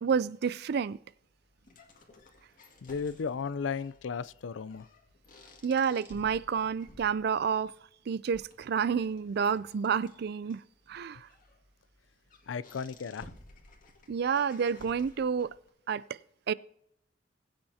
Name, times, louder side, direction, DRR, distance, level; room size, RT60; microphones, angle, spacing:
voice 1, 0.0-1.0 5.6-7.7 8.1-10.6 10.9-11.3 14.1-15.5 15.9-16.0 16.5-16.6, right 6 dB, 60° right, 0.4 m, -29 dB
sound 1, 0.7-15.7, left 2 dB, 45° left, 2.0 m, -56 dB
voice 2, 2.8-4.9 12.5-13.3, left 5 dB, 85° left, 0.4 m, -35 dB
21.0 x 8.8 x 2.8 m
head